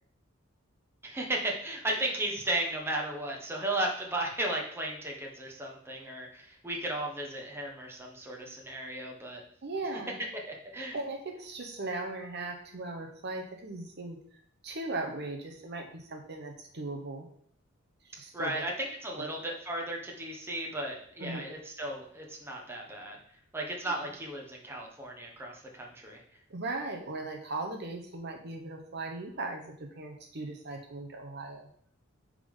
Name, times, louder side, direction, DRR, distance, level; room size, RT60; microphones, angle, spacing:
voice 1, 1.0-9.4 10.5-11.0 18.3-23.2 23.5-26.2, right 1 dB, 10° right, -1 dB, 1.2 m, -35 dB
voice 2, 9.6-10.2 10.9-17.3 18.0-18.6 19.2-19.3 21.2-21.5 26.5-31.7, right 2 dB, 50° right, 3 dB, 0.9 m, -38 dB
8.3 x 3.8 x 5.4 m, 0.63 s
head